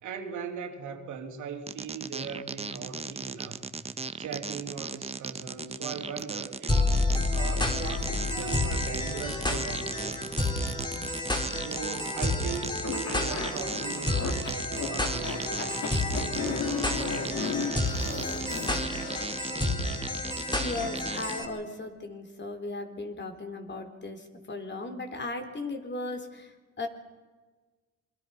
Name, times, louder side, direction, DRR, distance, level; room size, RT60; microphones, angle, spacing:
voice 1, 0.0-3.6 4.2-6.8 7.3-10.4 11.5-15.8 16.1-18.6 19.4-20.1, right 6 dB, 80° right, 3.0 m, -40 dB
sound 1, 1.7-21.3, right 4 dB, 20° right, 1.0 m, -37 dB
sound 2, 6.7-21.4, left 2 dB, 15° left, 4.2 m, -30 dB
sound 3, 12.8-19.4, left 5 dB, 60° left, 3.3 m, -34 dB
voice 2, 20.5-26.9, left 3 dB, 35° left, 3.7 m, -37 dB
27.5 x 23.0 x 5.7 m
cardioid pair, 90°, 30 cm